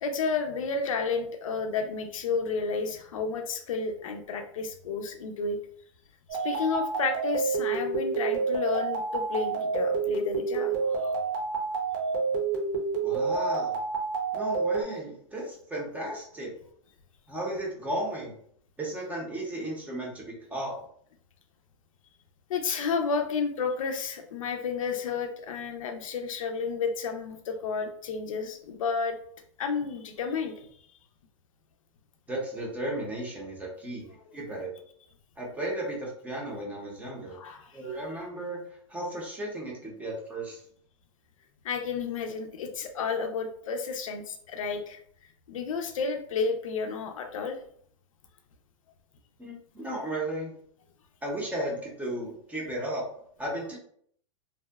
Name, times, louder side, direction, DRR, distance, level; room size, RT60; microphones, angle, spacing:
voice 1, 0.0-5.6 6.3-11.2 22.5-29.2 29.6-30.8 37.3-37.8 41.6-45.0 45.5-47.6, left 5 dB, 90° left, 6 dB, 0.5 m, -31 dB
sound 1, 6.3-14.8, right 4 dB, 45° right, 0.7 m, -29 dB
voice 2, 13.0-13.8 14.3-16.5 17.3-18.4 18.8-20.8 32.3-34.1 34.3-34.7 35.4-37.4 37.7-40.6 49.4-50.5 51.2-53.1 53.4-53.8, right 1 dB, 10° right, -3 dB, 0.6 m, -34 dB
2.6 x 2.1 x 2.2 m, 0.63 s
hypercardioid pair, 145°, 17 cm